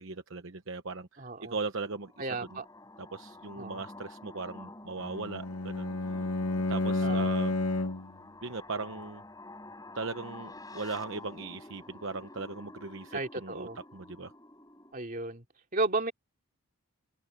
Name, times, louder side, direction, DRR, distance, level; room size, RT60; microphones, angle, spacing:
voice 1, 0.0-2.3 3.0-5.9 6.7-7.6 8.4-9.2 9.9-14.3, right 4 dB, 65° right, 1.0 m, -38 dB
voice 2, 1.2-1.6 2.2-2.6 3.6-3.8 7.0-7.3 13.1-13.8 14.9-15.4 15.7-16.1, right 2 dB, 40° right, 2.9 m, -33 dB
sound 1, 1.8-14.9, left 2 dB, 15° left, 5.6 m, -49 dB
Bowed string instrument, 5.0-8.2, left 2 dB, 90° left, 1.4 m, -30 dB
open air
head